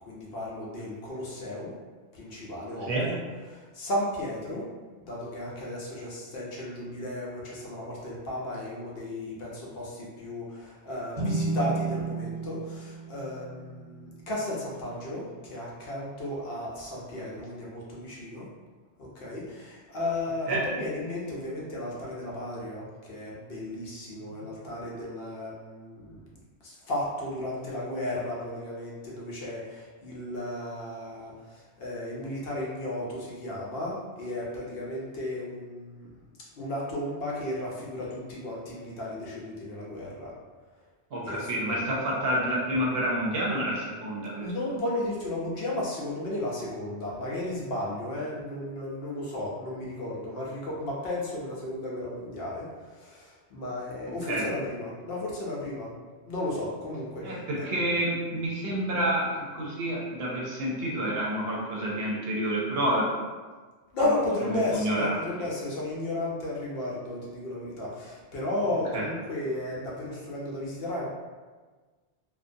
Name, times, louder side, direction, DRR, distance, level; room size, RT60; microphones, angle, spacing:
voice 1, 0.1-1.7 2.1-3.2 3.4-4.7 5.0-18.5 19.0-26.3 26.6-36.1 36.5-40.3 41.2-41.9 44.4-55.9 56.2-57.7 63.9-71.1, left 1 dB, 65° left, -5 dB, 0.8 m, -34 dB
sound 1, 11.1-14.7, right 3 dB, 25° right, 0.8 m, -33 dB
voice 2, 41.1-44.5 54.3-54.4 57.2-59.3 59.5-63.1 64.5-65.2 68.9-69.0, right 1 dB, 65° right, -4 dB, 0.8 m, -28 dB
2.6 x 2.1 x 2.5 m, 1.4 s
omnidirectional pair, 1.2 m